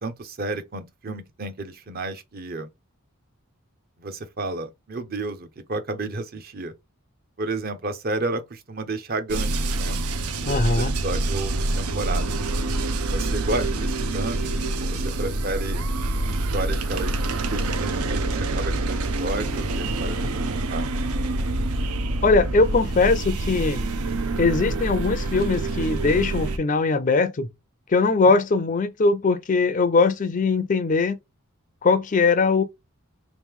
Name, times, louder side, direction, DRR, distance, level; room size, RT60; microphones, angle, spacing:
voice 1, 0.0-2.7 4.0-6.7 7.4-12.4 13.0-15.9 16.3-17.3 17.5-20.9, right 2 dB, 45° right, 0.7 m, -32 dB
sound 1, 9.3-26.6, right 2 dB, 85° right, 0.6 m, -26 dB
voice 2, 10.5-10.9 22.2-23.8 24.4-27.5 27.9-31.2 31.8-32.6, left 4 dB, 35° left, 0.4 m, -21 dB
3.4 x 3.1 x 3.6 m
head